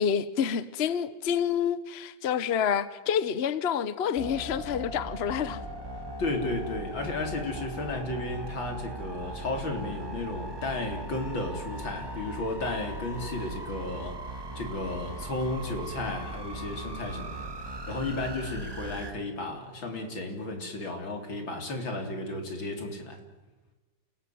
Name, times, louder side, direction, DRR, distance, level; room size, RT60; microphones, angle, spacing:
voice 1, 0.0-5.6, left 8 dB, 45° left, 1.0 m, -28 dB
sound 1, 4.1-19.1, right 1 dB, 10° right, 2.2 m, -39 dB
voice 2, 6.2-14.2 14.6-23.2, left 2 dB, 90° left, 4.3 m, -33 dB
28.5 x 18.0 x 9.4 m
omnidirectional pair, 2.0 m